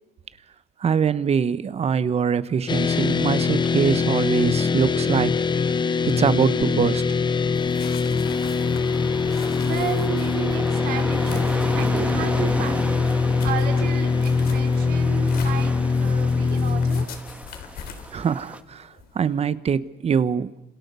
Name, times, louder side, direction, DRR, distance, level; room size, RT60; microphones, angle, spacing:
voice 1, 0.8-5.3 5.6-5.7 6.1-7.0 18.1-20.5, right 6 dB, 40° right, 15 dB, 1.1 m, -23 dB
sound 1, 2.7-17.1, left 5 dB, 25° left, 1.0 m, -22 dB
sound 2, 7.5-19.4, left 7 dB, 65° left, 3.9 m, -43 dB
sound 3, 8.2-18.6, right 1 dB, 10° right, 1.5 m, -34 dB
voice 2, 9.6-15.7 16.0-17.1, right 9 dB, 70° right, 4 dB, 4.8 m, -33 dB
29.5 x 27.0 x 7.0 m, 0.91 s
cardioid pair, 110°, 17 cm